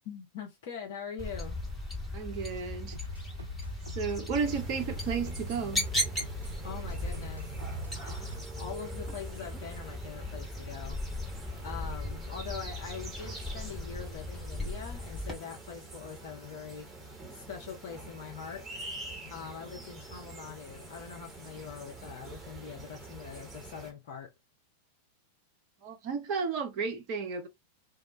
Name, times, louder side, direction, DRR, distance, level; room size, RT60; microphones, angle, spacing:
voice 1, 0.1-1.6 6.6-7.6 8.0-11.0 11.6-16.9 17.3-18.7 19.3-24.3, left 7 dB, 55° left, 0.6 m, -43 dB
sound 1, 1.2-15.3, left 1 dB, 10° left, 1.1 m, -37 dB
voice 2, 2.1-3.0 4.0-5.9 25.8-27.5, right 5 dB, 40° right, 0.6 m, -33 dB
sound 2, 2.9-8.5, left 3 dB, 85° right, 0.4 m, -44 dB
sound 3, 4.4-23.9, right 3 dB, 10° right, 1.0 m, -45 dB
2.2 x 2.0 x 3.0 m
figure-of-eight pair, 90°, 0 cm